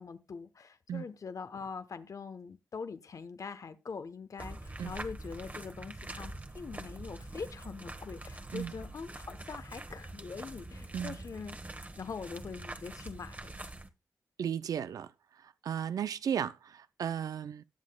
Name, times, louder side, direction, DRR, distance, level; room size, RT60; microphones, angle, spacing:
voice 1, 0.0-11.6 12.0-13.6, left 5 dB, 65° left, 0.9 m, -43 dB
sound 1, 4.4-13.9, right 2 dB, 25° right, 1.2 m, -44 dB
voice 2, 14.4-15.1 15.6-17.6, right 8 dB, 85° right, 0.5 m, -34 dB
18.5 x 7.6 x 2.3 m
cardioid pair, 45°, 6 cm